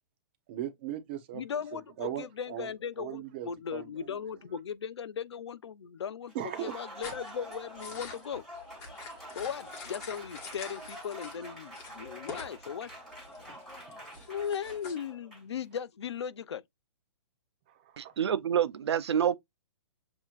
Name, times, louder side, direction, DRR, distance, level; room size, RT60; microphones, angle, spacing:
voice 1, 0.5-2.7 3.0-4.2 6.3-6.9 13.9-14.2 17.7-18.1, right 12 dB, 20° right, 0.8 m, -39 dB
voice 2, 1.3-8.4 9.3-12.9 14.3-16.6, left 7 dB, 70° left, 0.7 m, -37 dB
Applause, 6.3-15.6, equal, ahead, 1.7 m, -47 dB
sound 1, 7.0-11.4 11.7-12.6 12.8-14.9, left 4 dB, 15° left, 1.3 m, -46 dB
voice 3, 18.0-19.4, right 9 dB, 65° right, 0.6 m, -27 dB
7.3 x 2.9 x 2.4 m
hypercardioid pair, 180°, 15 cm